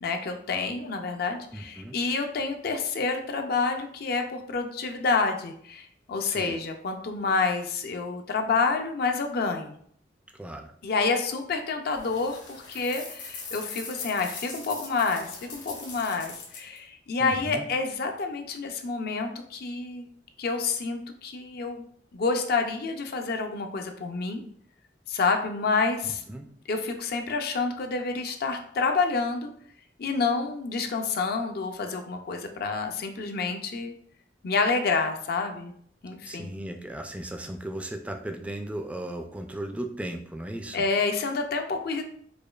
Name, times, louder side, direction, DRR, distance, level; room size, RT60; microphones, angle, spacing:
voice 1, 0.0-9.8 10.8-20.1 20.4-21.9 22.1-24.4 25.1-26.2 26.7-29.5 30.0-33.9 34.4-35.7 36.0-36.5 40.7-42.0, left 4 dB, 60° left, 5 dB, 0.4 m, -28 dB
voice 2, 1.5-2.0 6.2-6.6 10.4-10.7 17.2-17.7 26.0-26.5 36.2-40.8, right 1 dB, 5° right, 5 dB, 0.3 m, -36 dB
sound 1, 11.9-16.8, left 4 dB, 75° left, 1.0 m, -41 dB
5.0 x 2.2 x 2.3 m, 0.62 s
head